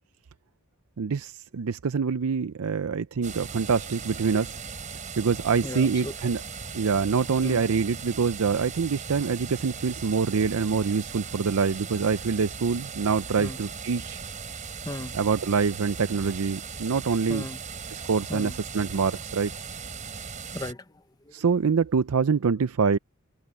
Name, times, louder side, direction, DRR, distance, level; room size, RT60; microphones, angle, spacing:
voice 1, 1.0-4.6 5.2-6.4 6.7-14.2 15.1-17.4 17.9-19.5 21.3-23.0, right 5 dB, 80° right, 0.5 m, -25 dB
sound 1, 3.2-20.7, right 5 dB, 35° right, 3.7 m, -38 dB
voice 2, 5.6-6.3 7.4-7.6 13.4-13.6 14.8-15.2 17.3-17.6 18.3-18.6 20.1-20.2 20.5-21.4, left 1 dB, 15° left, 1.0 m, -37 dB
head